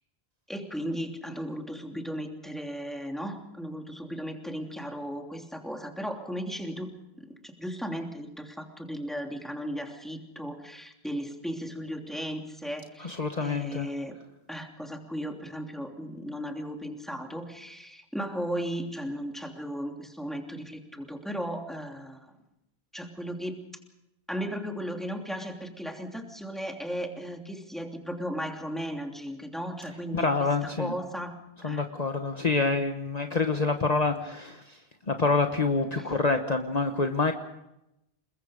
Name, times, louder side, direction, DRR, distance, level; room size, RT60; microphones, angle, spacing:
voice 1, 0.5-6.9 7.2-14.1 14.5-22.3 22.9-23.6 24.3-30.3 30.6-31.3 31.6-31.8 36.0-36.1, equal, ahead, 2 dB, 2.9 m, -36 dB
voice 2, 13.0-13.9 30.1-30.9 31.6-34.8 35.1-37.3, left 3 dB, 40° left, 5 dB, 1.3 m, -27 dB
29.0 x 21.5 x 5.1 m, 0.88 s
omnidirectional pair, 1.1 m